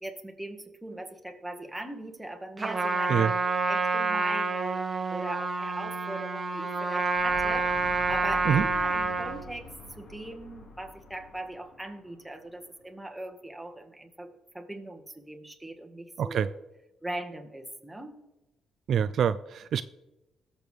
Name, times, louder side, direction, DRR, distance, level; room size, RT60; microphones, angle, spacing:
voice 1, 0.0-3.4 3.7-7.8 8.1-16.5 17.0-18.2, right 1 dB, 5° right, 4 dB, 1.6 m, -40 dB
Trumpet, 2.6-9.4, right 3 dB, 30° right, 1.3 m, -28 dB
sound 1, 6.9-12.7, equal, 55° left, 2.1 m, -45 dB
voice 2, 16.2-16.5 18.9-19.8, right 8 dB, 60° right, 13 dB, 0.3 m, -25 dB
18.5 x 6.9 x 3.4 m, 1.0 s
cardioid pair, 90°, 0 cm